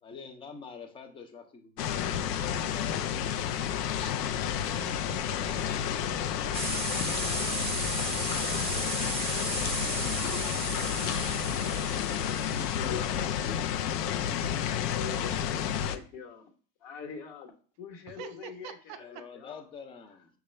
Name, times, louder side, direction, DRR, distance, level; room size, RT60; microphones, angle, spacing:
voice 1, 0.0-3.4 4.6-5.0 9.6-10.1 18.9-20.3, left 5 dB, 15° left, 0.3 m, -48 dB
sound 1, 1.8-16.0, left 9 dB, 80° left, 0.6 m, -31 dB
voice 2, 3.9-5.6 18.1-19.0, right 9 dB, 50° right, 0.7 m, -47 dB
Explosion, 5.0-13.7, left 1 dB, 30° left, 0.7 m, -51 dB
sound 2, 6.5-13.2, right 3 dB, 10° right, 0.7 m, -35 dB
voice 3, 12.7-13.7 14.7-16.4 16.8-17.5 17.8-19.6, left 7 dB, 45° left, 1.2 m, -42 dB
6.4 x 2.3 x 3.1 m
hypercardioid pair, 105°, 47 cm